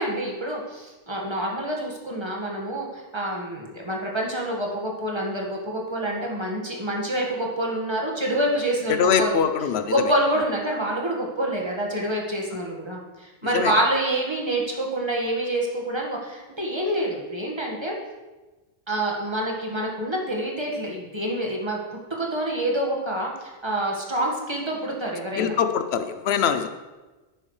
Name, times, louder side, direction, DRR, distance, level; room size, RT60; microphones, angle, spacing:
voice 1, 0.0-9.4 9.9-18.0 18.9-21.8 22.2-25.5, right 1 dB, 25° right, -1 dB, 1.6 m, -27 dB
voice 2, 9.0-9.9 13.5-13.7 25.4-26.7, left 7 dB, 65° left, 9 dB, 0.9 m, -22 dB
11.0 x 9.1 x 3.2 m, 1.2 s
omnidirectional pair, 1.2 m